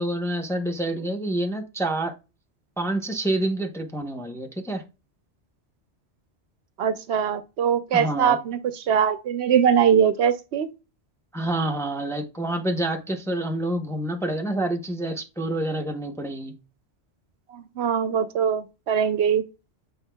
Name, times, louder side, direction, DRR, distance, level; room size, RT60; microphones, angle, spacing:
voice 1, 0.0-2.1 2.8-4.8 7.9-8.4 11.3-16.5, right 1 dB, 5° left, 0.7 m, -27 dB
voice 2, 6.8-8.6 8.9-10.7 17.5-19.4, right 8 dB, 70° right, 0.8 m, -22 dB
8.0 x 5.2 x 2.2 m
omnidirectional pair, 1.2 m